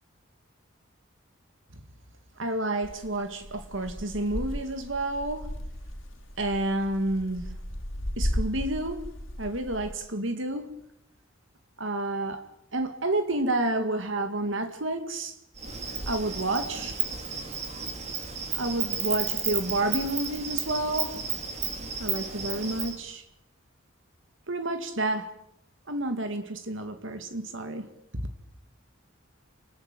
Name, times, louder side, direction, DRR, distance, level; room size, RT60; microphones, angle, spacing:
voice 1, 2.4-5.5 6.4-7.6 8.2-9.0 9.4-10.7 11.8-12.4 12.7-15.4 16.1-17.0 18.5-21.2 22.0-23.2 24.5-25.3 25.9-28.3, right 2 dB, 65° right, 2.3 m, -30 dB
sound 1, 2.8-9.9, equal, 70° left, 3.2 m, -35 dB
Insect, 15.6-23.0, right 6 dB, 35° right, 4.0 m, -33 dB
29.5 x 20.0 x 9.1 m
head